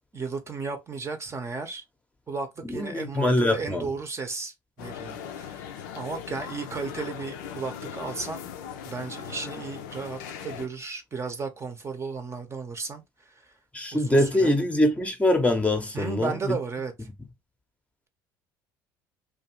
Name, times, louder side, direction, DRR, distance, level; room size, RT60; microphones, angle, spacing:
voice 1, 0.1-1.8 2.3-8.4 8.8-13.0 13.4-13.5 13.9-14.5 15.9-17.1, right 4 dB, 30° right, 0.7 m, -34 dB
voice 2, 2.6-3.9 13.7-16.6, left 1 dB, 15° left, 0.7 m, -23 dB
sound 1, 4.8-10.7, left 8 dB, 80° left, 0.5 m, -39 dB
2.6 x 2.4 x 2.9 m
hypercardioid pair, 70°, 10 cm